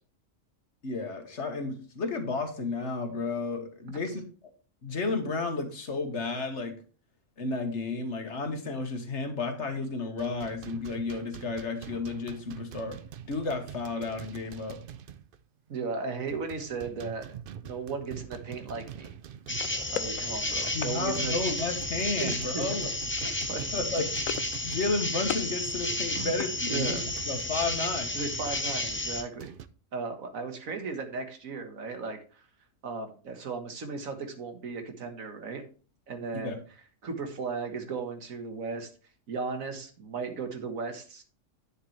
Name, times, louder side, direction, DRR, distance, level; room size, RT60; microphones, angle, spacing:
voice 1, 0.8-4.2 4.8-6.8 7.4-13.0 13.3-14.8 20.7-22.9 23.7-28.1 36.4-36.6, left 3 dB, 60° left, 6 dB, 1.7 m, -32 dB
sound 1, 10.2-15.4 15.7-15.8 16.3-20.3 20.7-27.6 28.3-29.7, right 9 dB, 60° right, 0.6 m, -46 dB
voice 2, 15.7-17.3 17.6-19.1 19.9-21.3 22.2-22.8 23.2-23.7 26.2-26.3 26.7-27.1 28.1-29.5 29.9-32.4 32.8-35.6 36.1-36.6 37.0-38.9 39.3-41.2, right 4 dB, 90° right, 6 dB, 1.8 m, -36 dB
sound 2, 19.5-29.2, left 1 dB, 10° left, 0.7 m, -32 dB
sound 3, 19.6-21.0 22.3-22.7 23.0-23.2 23.5-24.6 24.9-25.5 25.9-27.1, left 11 dB, 90° left, 1.0 m, -39 dB
9.5 x 7.0 x 3.2 m, 0.38 s
omnidirectional pair, 1.4 m